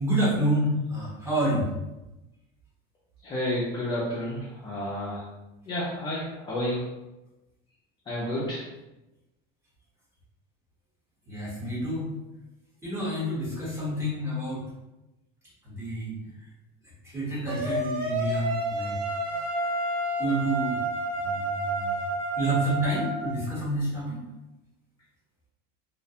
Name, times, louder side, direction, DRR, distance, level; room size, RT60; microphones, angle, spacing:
voice 1, 0.0-1.7 11.3-12.1 12.8-14.6 15.6-16.1 17.0-18.9 20.2-20.8 21.2-21.9 22.4-24.2, right 1 dB, 10° right, -7 dB, 0.9 m, -28 dB
voice 2, 3.2-5.2 5.7-6.8 8.1-8.6, left 1 dB, 20° left, -7 dB, 0.4 m, -30 dB
sound 1, 17.5-23.2, right 1 dB, 40° right, 0.5 m, -30 dB
2.4 x 2.1 x 2.7 m, 1.0 s
cardioid pair, 160°, 21 cm